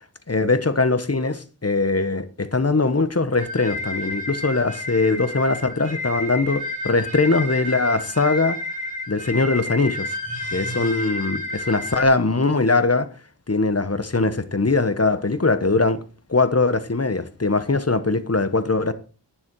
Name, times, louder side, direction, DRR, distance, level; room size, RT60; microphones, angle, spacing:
voice 1, 0.3-8.6 9.1-10.1 10.5-13.1 13.5-16.0 16.3-18.9, left 3 dB, 35° left, 1.3 m, -21 dB
sound 1, 3.4-12.0, left 2 dB, 20° left, 5.2 m, -31 dB
11.0 x 9.7 x 4.8 m
wide cardioid pair, 40°, 41 cm